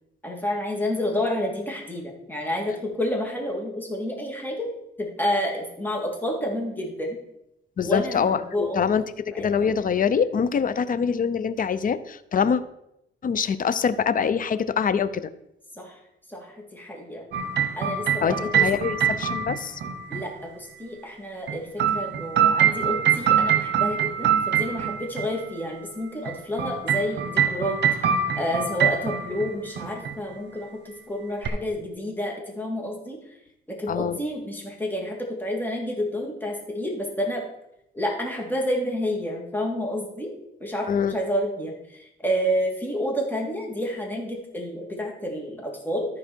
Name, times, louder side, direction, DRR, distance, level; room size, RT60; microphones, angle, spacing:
voice 1, 0.2-4.7 5.0-7.2 7.8-8.9 9.3-9.7 15.8-15.9 16.3-17.2 17.8-18.6 19.1-19.3 20.1-21.7 21.9-27.8 28.3-33.2 33.7-37.4 37.9-40.3 40.6-46.1, equal, 10° left, -1 dB, 2.9 m, -29 dB
voice 2, 7.8-12.6 13.2-15.3 18.2-19.8 33.9-34.2 40.9-41.2, left 6 dB, 45° left, 13 dB, 0.7 m, -24 dB
sound 1, 17.3-20.3 21.5-25.3 26.3-29.5 29.8-30.1 31.5-31.6, right 8 dB, 60° right, 1.1 m, -24 dB
13.5 x 4.8 x 4.5 m, 0.83 s
cardioid pair, 90°, 20 cm